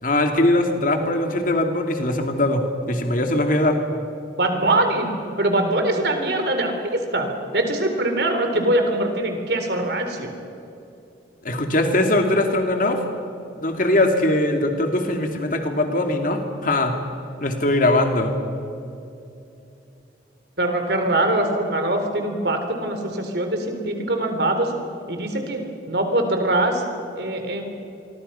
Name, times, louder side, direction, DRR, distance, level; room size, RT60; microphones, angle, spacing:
voice 1, 0.0-2.6 2.9-3.8 11.4-13.0 13.6-17.0 17.4-18.3, left 1 dB, 45° left, 4 dB, 2.5 m, -21 dB
voice 2, 4.4-5.1 5.4-7.3 7.5-10.3 20.6-24.7 25.1-25.6 25.9-26.8 27.2-27.6, right 1 dB, 60° right, 5 dB, 3.9 m, -22 dB
27.0 x 23.5 x 5.7 m, 2.7 s
head